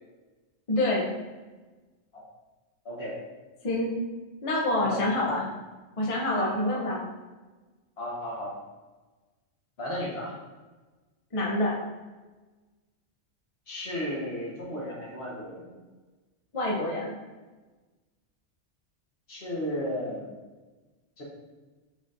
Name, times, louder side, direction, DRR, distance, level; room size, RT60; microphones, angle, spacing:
voice 1, 0.7-1.1 3.6-3.9 4.4-5.4 6.0-7.0 11.3-11.8 16.5-17.1, left 1 dB, 35° left, -3 dB, 0.6 m, -26 dB
voice 2, 4.8-5.3 6.3-6.8 8.0-8.5 9.8-10.4 13.7-15.8 19.3-20.4 21.2-21.3, equal, 55° left, -5 dB, 1.5 m, -34 dB
5.0 x 3.9 x 2.6 m, 1.2 s
omnidirectional pair, 1.3 m